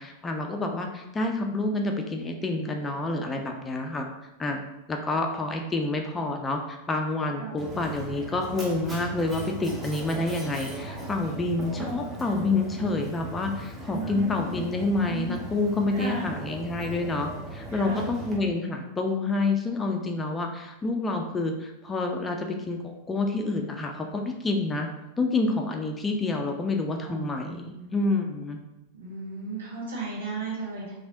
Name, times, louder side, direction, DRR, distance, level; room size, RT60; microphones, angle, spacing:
voice 1, 0.0-4.1 4.4-4.6 4.9-24.9 25.2-28.6, left 2 dB, 15° left, 3 dB, 0.3 m, -28 dB
voice 2, 7.4-7.7 13.9-14.7 15.9-16.4 17.7-18.0 27.0-27.9 28.9-30.9, right 3 dB, 70° right, -7 dB, 1.3 m, -36 dB
Mechanisms, 7.6-18.4, right 1 dB, 15° right, 0.8 m, -38 dB
3.2 x 2.7 x 2.6 m, 0.97 s
figure-of-eight pair, 90°, 0 cm